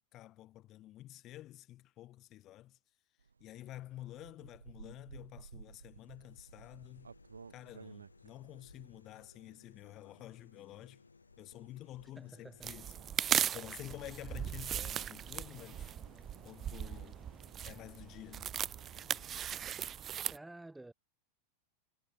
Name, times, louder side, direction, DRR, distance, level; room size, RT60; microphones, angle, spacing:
voice 1, 0.0-2.8 3.4-7.1 7.5-11.0 11.4-12.9 13.5-15.9 16.4-17.2 17.6-18.5, left 14 dB, 35° left, 2.4 m, -50 dB
sound 1, 3.2-17.3, right 5 dB, 75° right, 2.2 m, -57 dB
sound 2, 5.5-20.2, left 4 dB, 75° left, 3.0 m, -64 dB
voice 2, 12.2-12.7 20.3-20.9, right 2 dB, 5° right, 1.2 m, -51 dB
sound 3, 12.6-20.4, right 9 dB, 25° right, 0.4 m, -38 dB
figure-of-eight pair, 90°, 0 cm